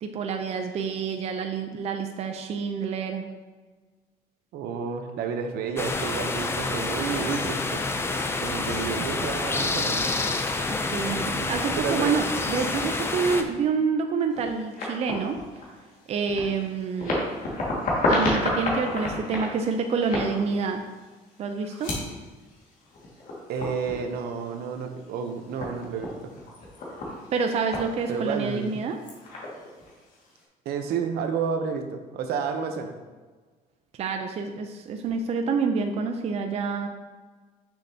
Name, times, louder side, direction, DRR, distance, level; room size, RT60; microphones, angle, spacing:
voice 1, 0.0-3.3 8.8-8.9 10.7-15.4 16.1-17.3 18.1-20.8 21.4-22.0 27.3-29.0 34.0-36.9, right 5 dB, 40° right, 5 dB, 0.5 m, -28 dB
voice 2, 4.5-7.8 8.4-10.0 11.8-12.1 13.4-13.5 23.5-26.3 28.1-28.8 30.6-32.9, right 6 dB, 75° right, 6 dB, 0.8 m, -30 dB
sound 1, 5.8-13.4, left 3 dB, 15° left, 0.4 m, -28 dB
sound 2, 14.3-30.4, left 1 dB, 55° left, 1.9 m, -33 dB
6.5 x 6.5 x 2.8 m, 1.3 s
cardioid pair, 145°, 16 cm